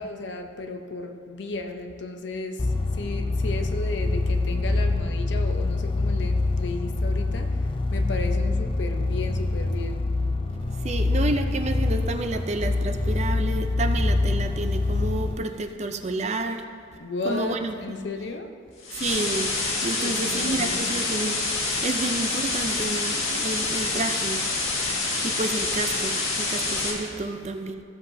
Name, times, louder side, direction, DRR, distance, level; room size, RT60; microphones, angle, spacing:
voice 1, 0.0-2.7 2.9-7.5 7.9-10.1 16.9-18.5 20.0-20.9, left 2 dB, 60° left, 5 dB, 0.7 m, -34 dB
sound 1, 2.6-15.3, left 2 dB, 25° left, 0.4 m, -25 dB
voice 2, 10.8-16.6 17.2-18.0 18.9-19.5 19.8-24.4 25.2-27.8, right 2 dB, 35° right, 7 dB, 0.4 m, -30 dB
sound 2, 18.8-26.9, left 3 dB, 85° left, 1.8 m, -27 dB
15.5 x 7.4 x 2.7 m, 2.3 s
head